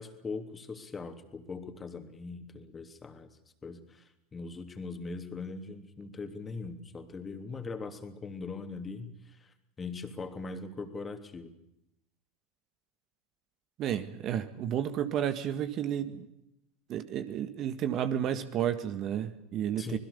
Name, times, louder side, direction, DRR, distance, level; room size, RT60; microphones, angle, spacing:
voice 1, 0.0-3.3 3.6-11.5 19.8-20.0, left 4 dB, 20° left, 7 dB, 3.1 m, -41 dB
voice 2, 13.8-16.3 16.9-20.0, right 10 dB, 40° right, 11 dB, 1.8 m, -32 dB
26.0 x 21.0 x 7.0 m, 0.84 s
figure-of-eight pair, 85°, 0 cm